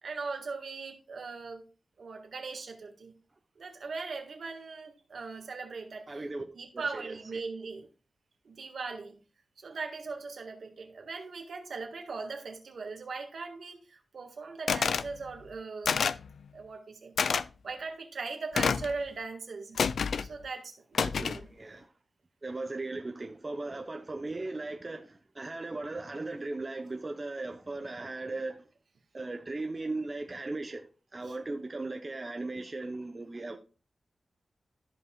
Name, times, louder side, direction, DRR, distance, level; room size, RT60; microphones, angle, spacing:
voice 1, 0.0-1.6 2.0-3.1 3.5-6.2 6.5-7.9 8.4-9.2 9.6-16.0 16.5-17.1 17.6-19.8 20.2-21.5, right 4 dB, 70° right, 1.6 m, -39 dB
voice 2, 6.1-6.4 6.7-7.4 21.0-21.9 22.4-28.6 29.1-33.6, right 2 dB, 30° right, 0.7 m, -38 dB
sound 1, 14.7-15.1 15.8-16.3 17.2-17.4 18.5-18.9 19.8-20.3 20.9-21.4, left 6 dB, 85° left, 0.3 m, -28 dB
14.0 x 5.4 x 2.3 m
wide cardioid pair, 105°, 0 cm